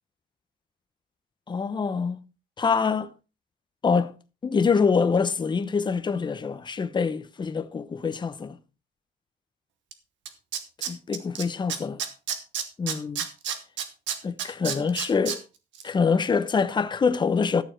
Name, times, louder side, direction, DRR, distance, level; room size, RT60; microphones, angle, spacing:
voice 1, 1.5-2.2 2.6-3.1 3.8-4.1 4.4-8.6 10.9-12.0 12.8-13.3 14.2-15.4 15.8-17.6, left 5 dB, 25° left, 0.9 m, -25 dB
Tools, 9.9-10.0 10.3-11.4 11.7-15.4 15.7-15.8, right 8 dB, 80° right, 1.7 m, -29 dB
12.5 x 7.1 x 4.5 m
cardioid pair, 140°, 19 cm